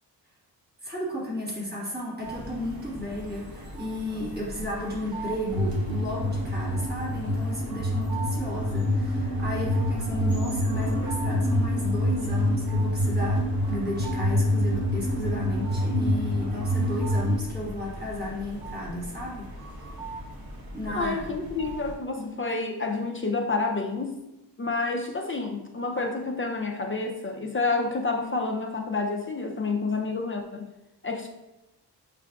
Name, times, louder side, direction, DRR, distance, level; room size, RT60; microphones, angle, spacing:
voice 1, 0.8-20.2 20.7-21.3 22.2-22.3, left 1 dB, 25° right, -5 dB, 1.3 m, -34 dB
sound 1, 2.2-22.0, right 1 dB, 55° right, 0.9 m, -40 dB
sound 2, 5.5-17.3, left 1 dB, 75° right, 1.2 m, -26 dB
voice 2, 20.9-24.2 24.6-30.7 31.0-31.3, left 3 dB, 30° left, 2 dB, 0.4 m, -29 dB
7.3 x 2.4 x 2.3 m, 0.99 s
wide cardioid pair, 95°, 43 cm